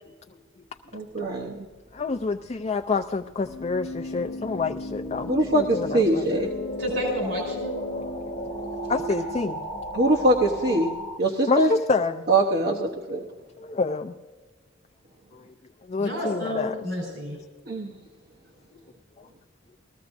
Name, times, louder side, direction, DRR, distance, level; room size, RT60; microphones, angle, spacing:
voice 1, 0.9-1.6 5.3-6.5 9.9-10.9 11.2-11.7 12.3-13.2 17.7-17.9, right 1 dB, 50° right, 0 dB, 1.0 m, -22 dB
sound 1, 1.9-11.2, left 2 dB, 70° left, 0.9 m, -36 dB
voice 2, 1.9-6.4 8.6-9.6 11.5-12.2 13.6-14.1 15.9-16.8, left 4 dB, 35° left, 4 dB, 0.5 m, -28 dB
Keyboard (musical), 3.4-9.4, equal, 10° right, 1.7 m, -38 dB
voice 3, 6.8-7.7 16.0-17.4, equal, 80° right, -1 dB, 4.4 m, -30 dB
20.0 x 14.5 x 2.6 m, 1.4 s
head